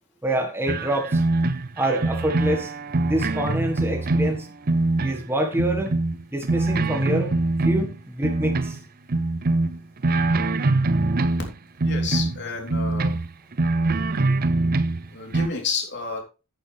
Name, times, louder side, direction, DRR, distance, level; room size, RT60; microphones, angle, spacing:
voice 1, 0.2-1.2 1.8-2.7 3.0-4.5 5.0-5.9 6.3-7.3 7.6-8.8 14.3-14.4, right 1 dB, 10° right, 2 dB, 1.8 m, -26 dB
sound 1, 0.7-5.2 5.5-8.8 9.1-11.5 11.8-15.5, right 2 dB, 45° right, 0.6 m, -23 dB
voice 2, 11.8-13.2 15.1-16.2, left 5 dB, 55° left, 2 dB, 3.7 m, -30 dB
10.5 x 9.0 x 3.5 m, 0.30 s
head